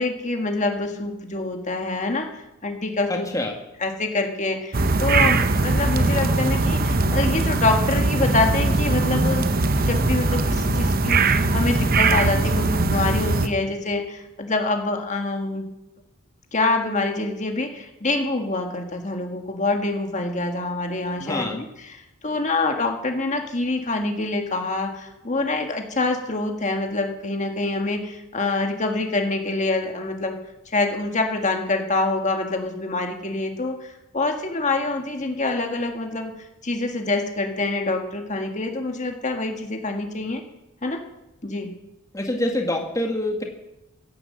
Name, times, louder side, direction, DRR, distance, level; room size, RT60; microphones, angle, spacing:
voice 1, 0.0-3.3 3.8-9.5 9.7-15.7 16.5-30.4 30.7-36.3 36.6-40.4 40.8-41.0 41.4-41.7, left 2 dB, 35° left, 4 dB, 1.7 m, -26 dB
voice 2, 3.1-3.6 21.2-21.6 42.1-43.4, left 1 dB, 15° left, 2 dB, 1.7 m, -26 dB
sound 1, 4.7-13.5, right 3 dB, 45° right, 1.0 m, -21 dB
16.0 x 10.5 x 7.7 m, 0.93 s
head